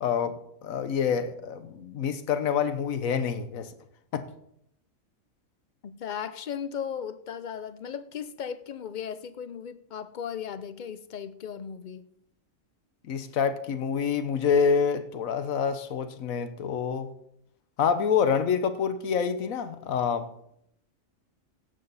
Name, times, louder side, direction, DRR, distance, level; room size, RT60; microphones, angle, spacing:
voice 1, 0.0-3.7 4.1-4.2 13.0-17.1 17.8-20.3, left 6 dB, 75° left, 1.3 m, -27 dB
voice 2, 5.8-12.1, left 8 dB, 50° left, 0.6 m, -36 dB
16.0 x 8.4 x 4.1 m
omnidirectional pair, 1.4 m